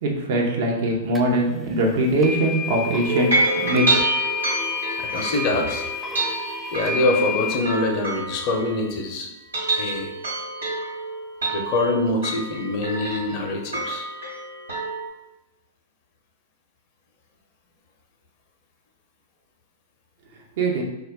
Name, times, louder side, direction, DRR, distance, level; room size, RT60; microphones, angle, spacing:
voice 1, 0.0-3.4 3.6-3.9 20.6-20.8, right 1 dB, 60° right, 0 dB, 0.7 m, -21 dB
sound 1, 1.2-1.3 2.2-7.6, left 5 dB, ahead, 0.3 m, -29 dB
sound 2, 3.1-9.0 9.4-15.1, right 2 dB, 85° right, 1.2 m, -28 dB
voice 2, 5.0-5.9 6.7-9.3 9.7-10.1 11.5-14.0, left 2 dB, 45° left, 2 dB, 0.6 m, -24 dB
2.3 x 2.1 x 3.5 m, 0.97 s
hypercardioid pair, 105°, 0 cm